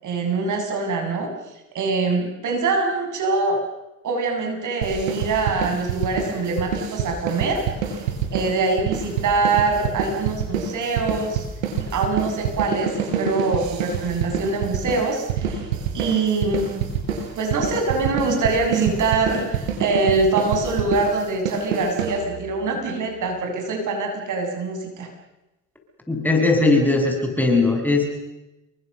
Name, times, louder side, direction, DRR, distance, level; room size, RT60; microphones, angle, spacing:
voice 1, 0.0-1.3 1.7-3.6 4.0-7.7 8.3-11.4 11.8-15.6 15.9-16.7 17.4-25.1, right 3 dB, 50° right, 3 dB, 7.5 m, -24 dB
sound 1, 4.8-22.6, right 7 dB, 80° right, 5.2 m, -27 dB
voice 2, 26.1-28.0, left 3 dB, 5° left, 3 dB, 7.1 m, -19 dB
29.0 x 23.5 x 6.8 m, 0.97 s
hypercardioid pair, 70°, 40 cm